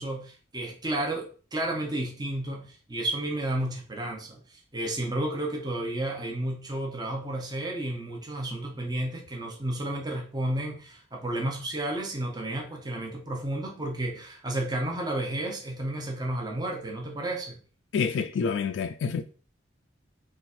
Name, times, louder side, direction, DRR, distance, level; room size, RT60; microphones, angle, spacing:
voice 1, 0.0-17.6, right 1 dB, 20° right, 0.7 m, -32 dB
voice 2, 17.9-19.2, left 6 dB, 70° left, 0.3 m, -27 dB
3.9 x 2.4 x 4.2 m
head